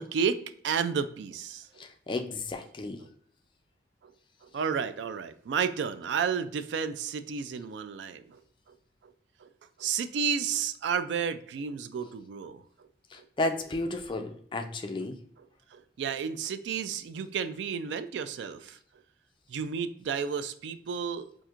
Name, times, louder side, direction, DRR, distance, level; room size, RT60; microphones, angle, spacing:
voice 1, 0.0-1.7 3.0-3.1 4.4-8.4 9.4-9.5 9.8-12.6 13.2-13.3 15.7-18.8 19.5-21.3, right 6 dB, 75° right, 12 dB, 0.3 m, -32 dB
voice 2, 1.8-3.0 13.1-15.1, left 2 dB, 25° left, 6 dB, 0.3 m, -33 dB
4.3 x 2.6 x 2.4 m, 0.63 s
head